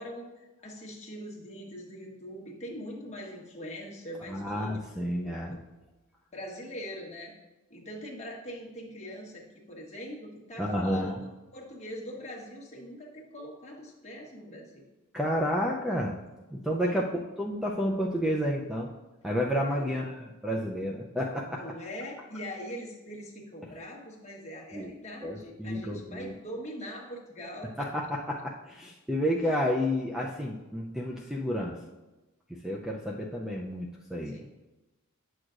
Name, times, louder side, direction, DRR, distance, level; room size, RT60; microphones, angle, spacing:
voice 1, 0.0-5.6 6.3-7.3 7.7-14.8 16.8-17.0 19.7-20.0 21.5-27.9 29.4-29.5 34.2-34.5, equal, 30° left, -1 dB, 1.3 m, -42 dB
voice 2, 4.3-5.5 10.6-11.1 15.1-16.1 16.5-17.0 17.4-18.9 19.2-21.6 24.7-24.9 25.2-26.3 27.8-31.8 32.5-34.4, equal, ahead, -2 dB, 0.4 m, -30 dB
8.9 x 6.2 x 2.5 m, 1.1 s
head